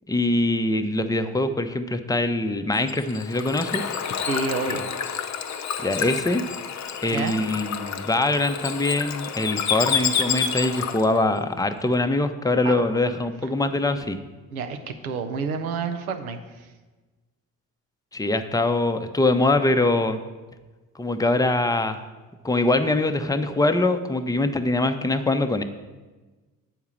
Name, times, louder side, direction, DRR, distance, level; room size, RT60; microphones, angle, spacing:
voice 1, 0.1-3.9 5.8-6.4 7.0-14.2 18.1-20.2 20.9-22.0 22.4-25.6, left 2 dB, 10° left, 8 dB, 0.7 m, -23 dB
Bird / Water, 2.7-11.2, left 7 dB, 40° left, 0.7 m, -29 dB
voice 2, 4.3-4.9 7.1-7.4 12.6-12.8 14.5-16.7, right 5 dB, 90° right, 8 dB, 0.6 m, -29 dB
7.2 x 4.7 x 7.0 m, 1.3 s
hypercardioid pair, 40°, 42 cm